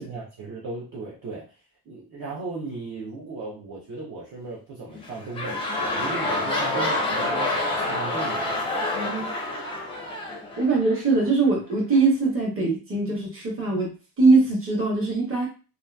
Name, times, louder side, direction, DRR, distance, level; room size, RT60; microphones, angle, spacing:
voice 1, 0.0-1.5 1.9-8.7, right 3 dB, 50° right, -5 dB, 0.7 m, -36 dB
sound 1, 4.9-11.3 11.9-12.0, left 2 dB, 15° left, 0.4 m, -28 dB
voice 2, 8.9-9.3 10.6-13.9 14.2-15.5, right 3 dB, 30° right, -3 dB, 1.0 m, -22 dB
2.8 x 2.4 x 2.2 m, 0.33 s
wide cardioid pair, 175°, 41 cm